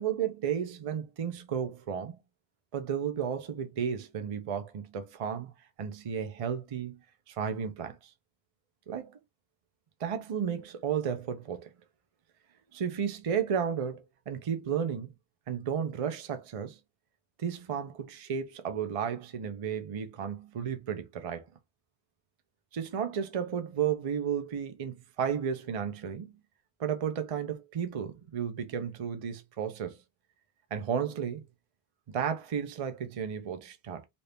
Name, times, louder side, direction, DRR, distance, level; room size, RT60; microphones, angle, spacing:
voice 1, 0.0-2.2 2.7-5.5 5.8-7.0 7.3-8.0 8.9-9.2 10.0-11.7 12.7-15.1 15.5-16.8 17.4-21.5 22.7-26.3 26.8-30.0 30.7-31.4 32.1-34.0, right 8 dB, 40° right, 0.5 m, -33 dB
2.7 x 2.6 x 3.3 m
omnidirectional pair, 1.1 m